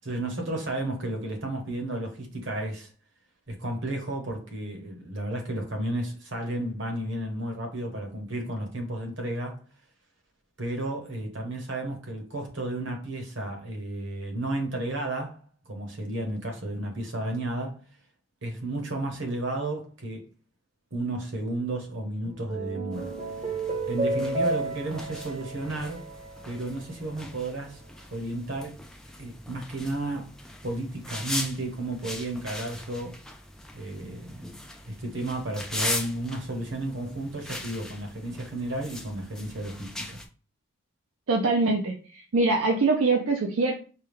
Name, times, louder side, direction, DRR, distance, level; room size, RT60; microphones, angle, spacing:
voice 1, 0.0-2.9 3.5-9.6 10.6-17.8 18.4-20.3 20.9-23.1 23.4-23.5 23.9-26.2 26.4-27.8 28.1-28.8 29.2-30.3 30.6-33.2 33.7-34.5 34.8-40.2, right 1 dB, 60° right, 1.0 m, -33 dB
sound 1, 22.2-26.8, right 2 dB, 30° right, 0.7 m, -32 dB
sound 2, 22.9-40.3, left 1 dB, 5° left, 0.3 m, -39 dB
voice 2, 41.3-43.7, right 3 dB, 75° right, 0.5 m, -23 dB
4.7 x 2.3 x 3.4 m
head